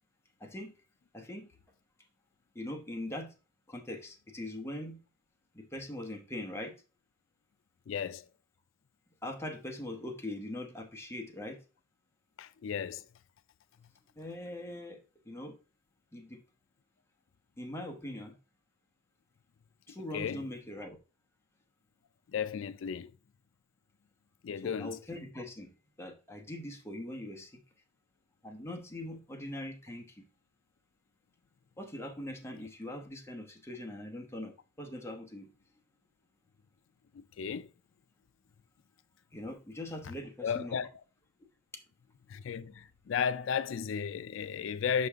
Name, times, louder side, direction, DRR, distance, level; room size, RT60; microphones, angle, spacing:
voice 1, 0.4-0.7 1.1-1.5 2.5-3.3 3.7-5.0 5.5-6.8 9.2-11.6 14.2-15.0 15.3-15.6 16.1-16.4 17.6-18.3 19.9-21.0 24.6-27.6 28.4-30.3 31.8-35.5 39.3-40.9, left 1 dB, 15° left, 1.1 m, -42 dB
voice 2, 7.9-8.3 12.4-13.1 20.1-20.5 22.3-23.1 24.4-25.0 37.1-37.7 40.0-40.1 40.4-40.9 42.3-45.1, left 7 dB, 70° left, 0.4 m, -34 dB
5.7 x 5.4 x 3.5 m
head